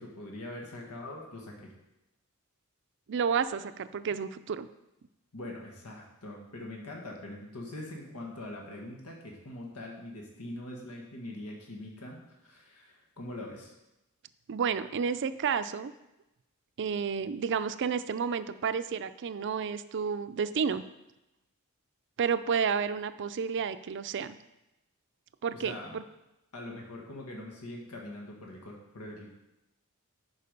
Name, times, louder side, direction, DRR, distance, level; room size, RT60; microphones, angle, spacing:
voice 1, 0.0-1.7 5.3-13.7 25.5-26.0 26.5-29.3, left 1 dB, 90° left, -1 dB, 1.7 m, -43 dB
voice 2, 3.1-4.7 14.5-15.9 16.8-20.8 22.2-24.4 25.4-26.0, right 6 dB, 55° right, 12 dB, 0.4 m, -31 dB
11.0 x 4.9 x 5.2 m, 0.94 s
head